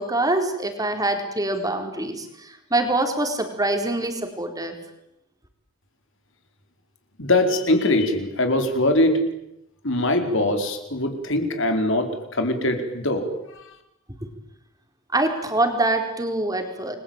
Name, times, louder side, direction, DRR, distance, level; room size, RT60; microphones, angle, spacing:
voice 1, 0.0-4.8 15.1-17.0, right 2 dB, 15° right, 5 dB, 4.2 m, -24 dB
voice 2, 7.2-9.2 9.8-13.3, left 1 dB, 60° left, 6 dB, 4.4 m, -22 dB
29.5 x 22.5 x 8.9 m, 0.83 s
head